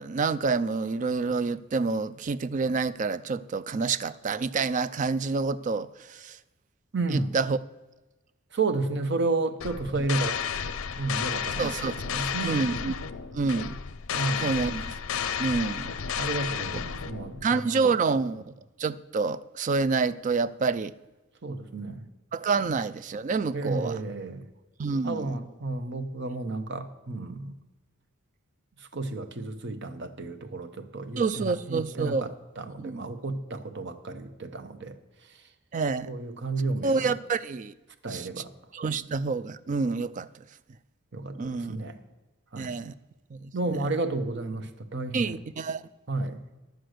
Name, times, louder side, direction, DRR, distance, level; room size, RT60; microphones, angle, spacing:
voice 1, 0.0-6.4 7.1-7.6 10.0-10.1 11.6-13.0 13.3-13.8 14.4-14.9 15.1-16.3 17.4-18.4 18.8-20.9 22.3-24.0 24.8-25.4 31.2-32.3 32.8-33.1 35.7-36.1 36.8-37.7 38.1-38.4 38.7-40.3 41.4-41.9 42.6-42.9 43.3-43.8 45.1-45.8, right 4 dB, 35° right, 0.3 m, -28 dB
voice 2, 6.9-7.3 8.5-10.4 11.0-11.7 12.1-12.6 14.1-14.5 16.2-17.8 21.4-22.0 22.7-22.8 23.5-24.5 25.0-27.6 28.9-32.3 32.6-34.9 36.1-37.0 38.0-38.5 41.1-42.0 42.5-42.8 43.5-45.4 46.1-46.4, right 3 dB, 55° right, 0.9 m, -32 dB
sound 1, 9.6-17.5, left 7 dB, 90° left, 0.5 m, -32 dB
10.5 x 7.8 x 6.5 m
head